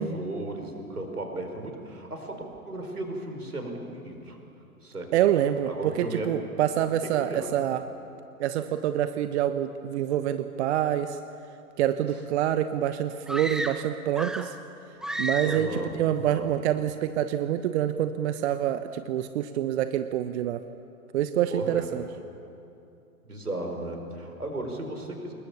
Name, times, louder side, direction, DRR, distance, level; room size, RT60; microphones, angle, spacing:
voice 1, 0.0-4.4 4.8-5.1 5.7-6.3 7.2-7.5 12.1-12.2 15.4-16.5 21.5-21.9 23.3-25.3, right 2 dB, 90° right, 3 dB, 4.8 m, -35 dB
voice 2, 5.1-7.8 8.4-11.2 11.8-14.6 15.2-20.6 21.1-22.0, right 11 dB, 50° right, 11 dB, 1.0 m, -26 dB
sound 1, 13.3-14.6 15.0-15.8, right 1 dB, ahead, 0.9 m, -32 dB
27.5 x 20.5 x 7.0 m, 2.7 s
figure-of-eight pair, 105°, 44 cm